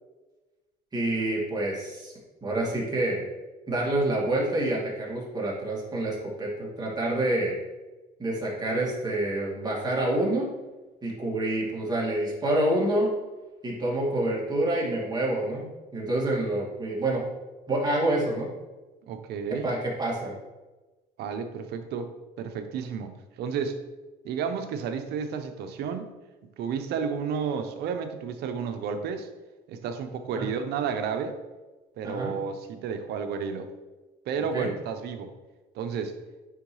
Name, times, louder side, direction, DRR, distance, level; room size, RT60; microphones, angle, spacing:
voice 1, 0.9-2.1 2.4-3.2 3.7-7.6 8.2-10.5 11.0-13.1 13.6-17.2 17.7-18.5 19.6-20.3 30.4-30.5 32.0-32.3 34.5-34.7, right 1 dB, 25° right, -3 dB, 2.1 m, -27 dB
voice 2, 19.1-19.7 21.2-22.1 22.4-23.8 24.2-26.1 26.6-29.3 29.7-31.4 32.0-33.7 34.3-35.3 35.7-36.2, right 6 dB, 75° right, 8 dB, 0.7 m, -31 dB
9.3 x 3.8 x 3.2 m, 1.2 s
cardioid pair, 110°, 17 cm